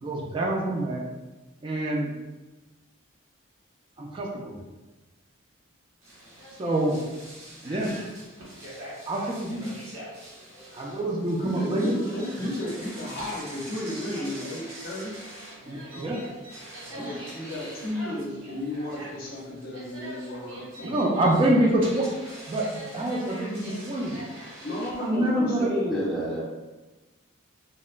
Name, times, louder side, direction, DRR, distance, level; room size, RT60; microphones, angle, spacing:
voice 1, 0.0-1.0 1.6-2.1 4.0-4.6 6.6-7.0 7.6-7.9 9.1-9.6 10.7-12.0 15.7-16.2 17.0-17.1 20.8-22.1 22.5-22.7 22.9-24.2 25.0-25.7, right 1 dB, 25° right, -2 dB, 0.3 m, -26 dB
sound 1, 6.0-25.3, right 1 dB, 80° right, 0.8 m, -43 dB
voice 2, 10.1-11.0 15.7-16.3 25.9-26.4, right 1 dB, ahead, -11 dB, 0.9 m, -36 dB
voice 3, 11.4-15.1 17.0-21.3 24.6-26.1, left 1 dB, 50° left, -4 dB, 0.6 m, -33 dB
2.9 x 2.1 x 2.3 m, 1.2 s
head